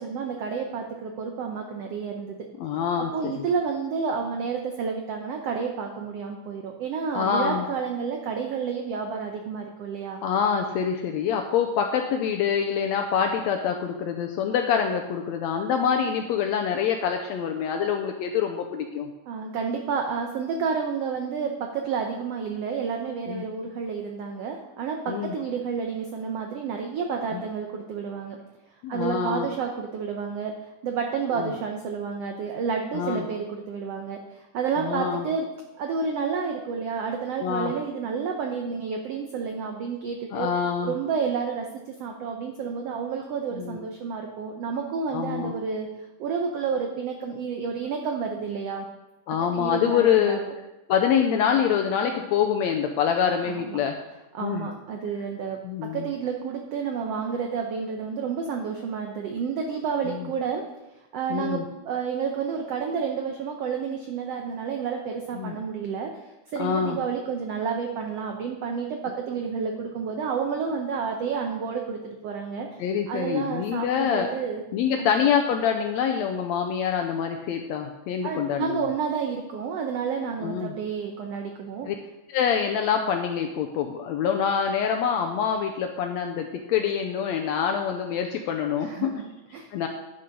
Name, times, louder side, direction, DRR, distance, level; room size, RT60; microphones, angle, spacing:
voice 1, 0.0-2.3 3.0-10.2 19.3-28.4 28.9-30.5 30.8-35.5 35.8-40.5 40.8-45.9 46.2-48.9 49.5-50.5 53.4-53.8 54.3-55.6 55.9-60.6 61.1-66.1 66.5-72.7 73.1-74.6 75.0-75.1 78.2-81.9 88.8-89.9, right 6 dB, 80° right, 3 dB, 1.4 m, -30 dB
voice 2, 2.6-3.4 7.1-7.6 10.2-19.1 23.3-23.4 25.1-25.3 27.3-27.4 28.8-29.5 31.3-31.5 32.9-33.3 34.8-35.3 37.4-37.7 40.3-40.9 43.5-43.8 45.1-45.6 49.3-50.4 50.9-54.0 54.4-54.7 55.6-56.1 60.1-60.3 61.3-61.6 65.3-65.6 66.6-67.0 72.8-74.3 74.7-78.9 80.4-80.7 81.9-82.0 82.3-89.2 89.7-89.9, left 7 dB, 90° left, 4 dB, 1.5 m, -25 dB
10.0 x 6.8 x 5.2 m, 1.0 s
omnidirectional pair, 3.8 m